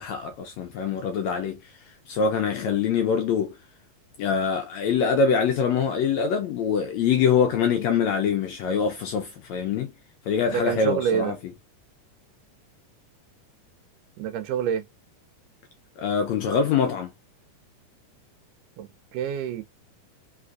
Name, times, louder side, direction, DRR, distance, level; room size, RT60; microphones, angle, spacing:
voice 1, 0.0-1.6 2.1-3.5 4.2-9.9 10.3-11.4 16.0-17.1, left 6 dB, 75° left, 1.7 m, -24 dB
voice 2, 10.5-11.3 14.2-14.8 18.8-19.6, right 8 dB, 80° right, 2.2 m, -27 dB
4.9 x 3.4 x 2.5 m
omnidirectional pair, 3.8 m